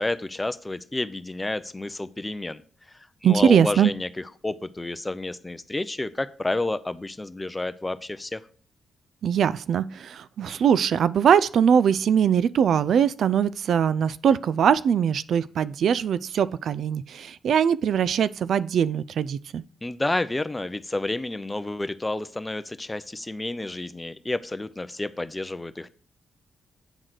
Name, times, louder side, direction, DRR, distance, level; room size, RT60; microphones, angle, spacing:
voice 1, 0.0-2.6 3.2-8.4 19.8-25.9, left 2 dB, 15° left, 0.6 m, -30 dB
voice 2, 3.2-3.9 9.2-19.6, right 8 dB, 70° right, 0.3 m, -21 dB
9.0 x 3.9 x 6.4 m
cardioid pair, 80°, 0 cm